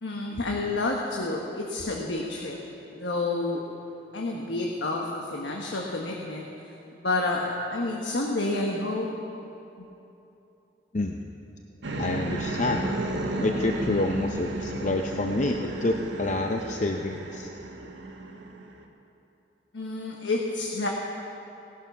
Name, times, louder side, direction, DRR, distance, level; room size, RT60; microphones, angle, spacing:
voice 1, 0.0-2.6 2.9-3.6 4.1-6.4 6.9-9.1 19.7-20.9, left 2 dB, 90° left, -1 dB, 1.3 m, -29 dB
voice 2, 10.9-11.3 12.0-12.9 13.4-17.5, left 2 dB, 40° left, 4 dB, 0.6 m, -28 dB
sound 1, 11.8-18.8, right 1 dB, 90° right, 1.5 m, -33 dB
18.5 x 11.0 x 6.0 m, 2.9 s
head